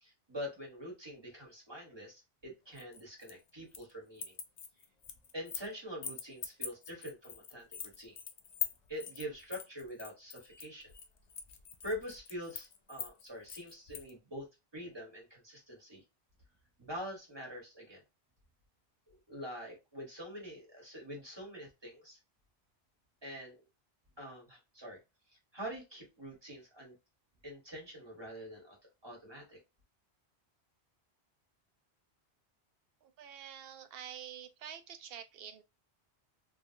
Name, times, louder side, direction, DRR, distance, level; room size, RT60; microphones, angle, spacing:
voice 1, 0.0-4.4 5.3-8.2 8.9-10.9 11.8-14.4 14.7-16.0 16.8-18.0 19.1-22.2 23.2-23.6 24.2-25.0 25.5-27.0 27.4-28.8 29.0-29.6, equal, 25° right, 1.4 m, -45 dB
sound 1, 2.8-3.9 4.2-5.7 6.0-14.1, left 8 dB, 55° left, 0.4 m, -43 dB
voice 2, 33.0-35.6, right 9 dB, 70° right, 0.7 m, -47 dB
3.2 x 2.3 x 2.6 m
omnidirectional pair, 1.1 m